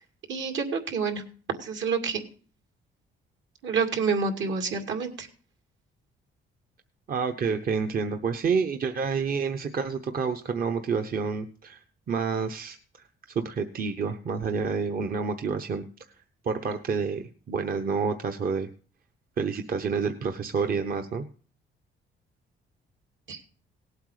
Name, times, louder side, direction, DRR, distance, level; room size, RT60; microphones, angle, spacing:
voice 1, 0.3-1.2 1.6-2.2 3.6-5.3 23.3-23.4, right 5 dB, 70° right, 4 dB, 2.5 m, -28 dB
voice 2, 7.1-12.8 13.3-15.8 16.4-18.7 19.4-21.2, right 5 dB, 45° right, 6 dB, 0.9 m, -28 dB
17.5 x 8.1 x 4.9 m, 0.43 s
cardioid pair, 90°, 20 cm